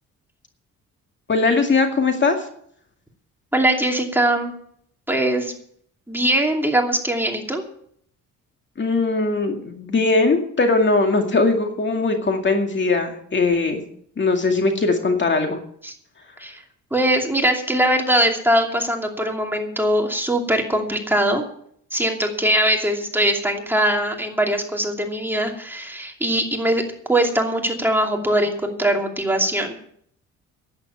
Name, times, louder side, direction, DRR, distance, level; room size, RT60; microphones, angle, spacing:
voice 1, 1.3-2.4 8.8-13.8 14.2-15.6, left 3 dB, 40° left, 4 dB, 2.2 m, -20 dB
voice 2, 3.5-4.5 5.1-5.5 6.1-7.6 15.8-15.9 16.4-16.6 16.9-21.4 21.9-26.8 27.1-29.8, right 1 dB, 5° right, 1 dB, 2.7 m, -21 dB
11.5 x 9.5 x 8.7 m, 0.65 s
cardioid pair, 90°, 30 cm